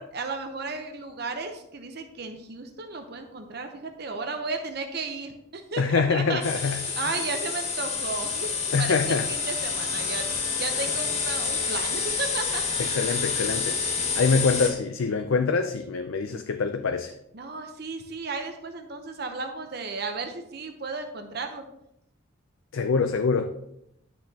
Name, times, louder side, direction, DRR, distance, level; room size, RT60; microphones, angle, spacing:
voice 1, 0.0-10.3 10.6-12.6 14.0-14.3 17.3-21.6, right 4 dB, 55° right, 6 dB, 0.8 m, -34 dB
voice 2, 5.8-6.8 8.7-9.3 12.8-13.8 14.2-17.1 22.7-23.5, left 4 dB, 85° left, 7 dB, 0.5 m, -25 dB
sound 1, 6.4-14.7, left 5 dB, 35° left, 1.2 m, -28 dB
10.5 x 6.2 x 2.8 m, 0.79 s
head